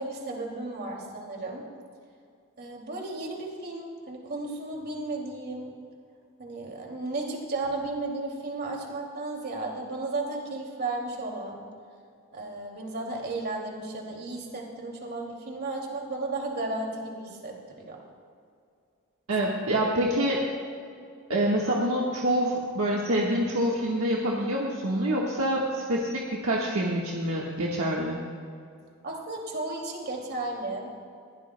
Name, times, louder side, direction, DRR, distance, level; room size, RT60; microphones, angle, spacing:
voice 1, 0.0-1.7 2.6-5.8 6.4-11.7 12.3-18.0 29.0-30.9, right 2 dB, 50° right, 0 dB, 2.5 m, -34 dB
voice 2, 19.3-20.4 21.3-28.2, right 1 dB, 65° right, -3 dB, 1.5 m, -26 dB
21.0 x 16.5 x 2.2 m, 2.3 s
head